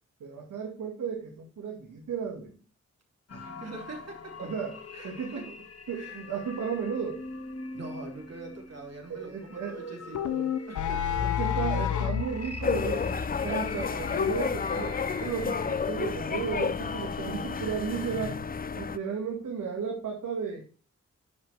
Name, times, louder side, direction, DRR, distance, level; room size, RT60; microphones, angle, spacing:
voice 1, 0.2-2.6 4.4-4.8 5.0-5.5 5.9-7.2 9.1-9.8 11.2-18.4 18.8-20.6, right 6 dB, 85° right, 0 dB, 1.9 m, -34 dB
sound 1, 3.3-18.4, left 3 dB, 55° left, 1.7 m, -42 dB
voice 2, 3.3-4.5 4.9-5.5 5.9-6.2 7.7-11.2, right 3 dB, 55° right, 1 dB, 3.2 m, -44 dB
sound 2, 10.1-12.3, left 10 dB, 80° left, 0.8 m, -28 dB
sound 3, 12.6-19.0, left 6 dB, 30° left, 0.5 m, -31 dB
10.5 x 5.4 x 3.4 m, 0.39 s
cardioid pair, 60°, 30 cm